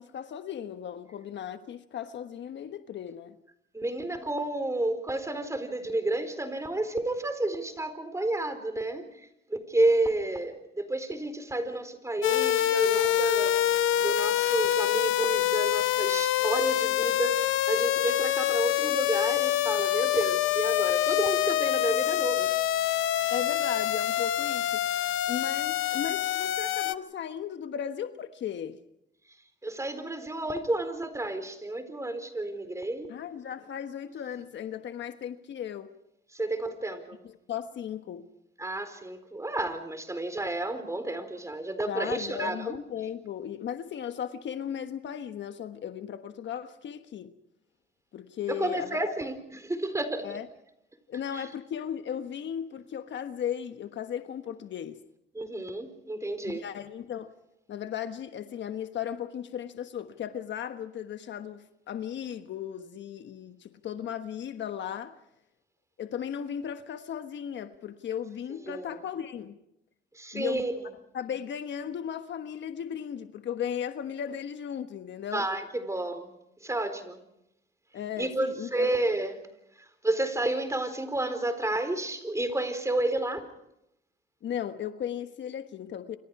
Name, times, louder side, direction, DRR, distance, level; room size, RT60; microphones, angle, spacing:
voice 1, 0.0-3.4 23.3-24.8 25.3-28.8 33.1-35.9 37.2-38.3 41.9-47.3 48.1-49.1 50.2-50.5 51.1-55.0 56.5-57.3 57.7-65.1 66.0-69.6 70.3-70.6 71.1-75.5 77.9-78.9 84.4-86.2, left 9 dB, 65° left, 1.3 m, -36 dB
voice 2, 3.7-9.1 9.5-13.6 14.0-22.6 29.6-33.1 36.3-37.2 38.6-42.8 48.5-50.4 51.3-51.5 55.3-56.6 68.7-68.9 70.2-70.7 75.3-76.3 76.6-77.2 78.2-79.4 79.8-83.4, right 2 dB, 15° right, 4.3 m, -31 dB
sound 1, 12.2-27.0, left 12 dB, 80° left, 0.8 m, -26 dB
28.5 x 25.5 x 4.8 m
cardioid pair, 90°, 20 cm